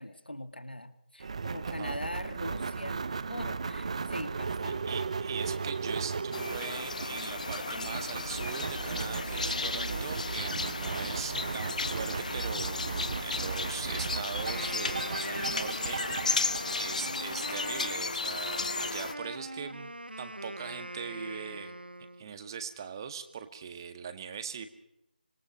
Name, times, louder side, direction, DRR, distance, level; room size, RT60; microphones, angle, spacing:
voice 1, 0.0-5.0 16.9-17.2, left 1 dB, 85° left, 10 dB, 2.1 m, -42 dB
sound 1, 1.2-17.7, right 5 dB, 40° right, 1.0 m, -36 dB
voice 2, 1.6-2.0 4.9-16.5 16.8-21.8 22.2-24.7, right 7 dB, 25° right, 9 dB, 1.7 m, -41 dB
sound 2, 6.3-19.1, left 4 dB, 50° left, 1.2 m, -34 dB
Wind instrument woodwind instrument, 14.4-22.4, right 1 dB, 85° right, 1.1 m, -42 dB
26.0 x 20.5 x 6.3 m, 0.82 s
figure-of-eight pair, 155°, 5 cm